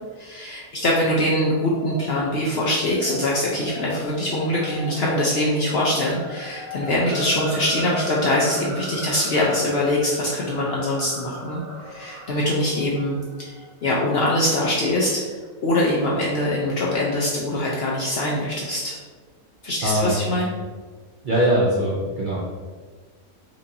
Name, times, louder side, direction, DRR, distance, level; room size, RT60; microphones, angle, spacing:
voice 1, 0.2-13.5 13.8-15.2 15.6-19.0 19.6-20.5, left 1 dB, 65° left, -4 dB, 0.6 m, -23 dB
sound 1, 1.2-13.7, right 1 dB, 30° right, 1.3 m, -37 dB
voice 2, 19.8-20.2 21.2-22.4, equal, 50° right, -6 dB, 0.6 m, -21 dB
4.5 x 2.5 x 2.7 m, 1.4 s
omnidirectional pair, 1.5 m